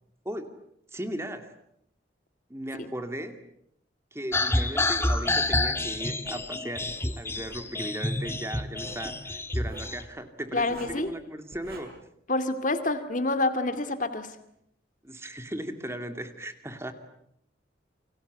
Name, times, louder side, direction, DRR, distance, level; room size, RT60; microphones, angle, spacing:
voice 1, 0.9-1.5 2.5-3.4 4.1-6.9 7.2-11.9 15.0-16.9, right 1 dB, 15° right, 7 dB, 2.3 m, -37 dB
sound 1, 4.3-10.0, left 2 dB, 15° left, 1.8 m, -28 dB
Writing, 6.3-6.5 6.9-7.7 8.6-9.1 9.5-9.9 10.6-11.1 11.5-11.8, right 1 dB, 55° right, 7.3 m, -46 dB
voice 2, 10.5-11.1 12.3-14.3, left 2 dB, 45° left, 9 dB, 2.4 m, -27 dB
29.0 x 25.0 x 8.1 m, 0.73 s
head